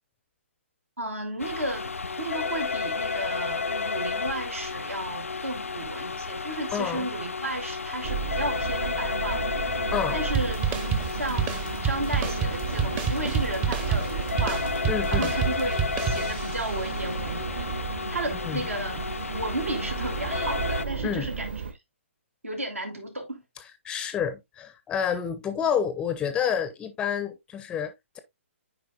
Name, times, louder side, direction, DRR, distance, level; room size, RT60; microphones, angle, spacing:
voice 1, 1.0-9.7 10.1-10.6 11.1-17.7 18.1-19.0 19.3-21.6 22.4-23.4, right 1 dB, 80° right, 2.3 m, -33 dB
sound 1, 1.4-20.9, left 4 dB, 85° left, 0.4 m, -32 dB
voice 2, 6.7-7.1 9.9-10.2 14.9-15.3 18.4-18.7 21.0-21.3 23.8-28.2, left 8 dB, 15° left, 0.5 m, -29 dB
sound 2, 8.0-21.7, right 6 dB, 55° right, 1.6 m, -34 dB
sound 3, 10.3-16.7, right 7 dB, 20° right, 0.7 m, -29 dB
10.0 x 4.6 x 2.3 m
figure-of-eight pair, 130°, 7 cm